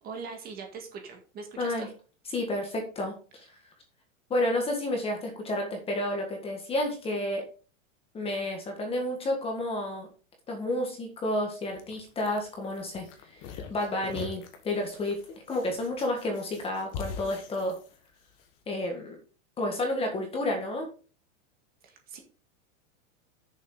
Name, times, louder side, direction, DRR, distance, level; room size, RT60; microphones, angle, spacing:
voice 1, 0.0-1.9 21.8-22.2, right 5 dB, 25° right, 3 dB, 1.8 m, -41 dB
voice 2, 1.6-1.9 2.3-3.5 4.3-7.4 8.1-10.1 10.5-13.0 13.7-15.2 15.5-17.8 18.7-19.2 19.6-20.9, left 1 dB, 15° left, 2 dB, 1.7 m, -30 dB
sound 1, 11.6-18.5, left 5 dB, 30° left, 1.5 m, -43 dB
9.2 x 7.0 x 3.9 m, 0.37 s
supercardioid pair, 165°, 40 cm